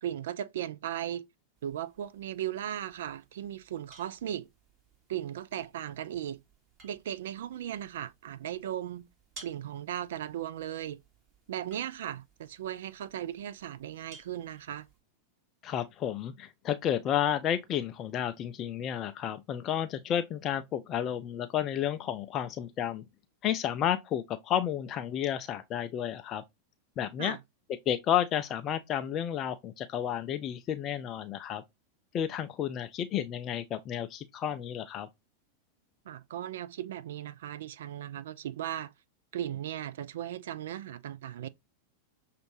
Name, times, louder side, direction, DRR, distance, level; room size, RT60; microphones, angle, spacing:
voice 1, 0.0-1.2 1.6-4.5 5.1-6.4 6.8-9.1 9.4-11.0 11.5-14.9 27.2-27.4 36.1-38.9 39.3-41.5, right 11 dB, 60° right, 0.3 m, -37 dB
sound 1, 1.5-15.0, right 3 dB, 35° right, 2.2 m, -58 dB
voice 2, 15.6-23.0 23.4-26.4 27.0-27.4 27.9-31.6 32.1-35.1, left 10 dB, 30° left, 0.3 m, -31 dB
6.2 x 2.5 x 3.2 m
figure-of-eight pair, 90°, 0 cm